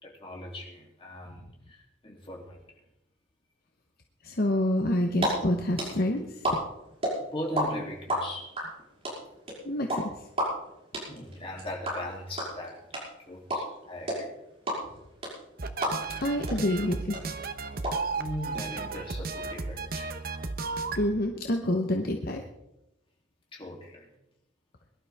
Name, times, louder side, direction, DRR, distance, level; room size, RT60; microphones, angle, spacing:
voice 1, 0.0-2.8 7.3-8.6 11.1-12.9 13.2-14.3 18.1-20.1 23.5-24.1, left 1 dB, 30° left, -2 dB, 3.1 m, -39 dB
voice 2, 4.2-6.6 9.6-10.1 16.2-17.2 21.0-22.4, left 1 dB, 50° left, 3 dB, 1.1 m, -27 dB
sound 1, 4.9-5.3 5.5-7.6 7.9-16.2 16.5-16.6 16.8-17.9, right 1 dB, 30° right, 5.9 m, -30 dB
sound 2, 15.6-21.1, right 4 dB, 50° right, 1.0 m, -34 dB
23.0 x 12.0 x 3.6 m, 0.88 s
head